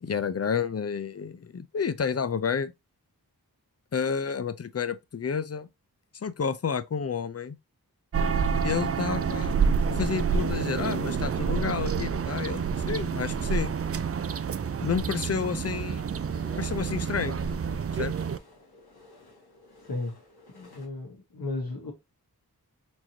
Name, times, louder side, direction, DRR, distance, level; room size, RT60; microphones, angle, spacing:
voice 1, 0.0-2.7 3.9-5.7 6.2-7.6 8.6-9.5 9.9-13.7 14.8-16.0 16.6-17.4 17.9-18.1, left 6 dB, 40° left, 0.5 m, -30 dB
sound 1, 8.1-18.4, right 6 dB, 40° right, 0.4 m, -28 dB
sound 2, 14.5-20.9, left 2 dB, 90° left, 1.3 m, -55 dB
voice 2, 19.8-20.2 20.5-21.9, left 2 dB, 65° left, 1.4 m, -34 dB
4.4 x 3.0 x 2.8 m
cardioid pair, 40°, 38 cm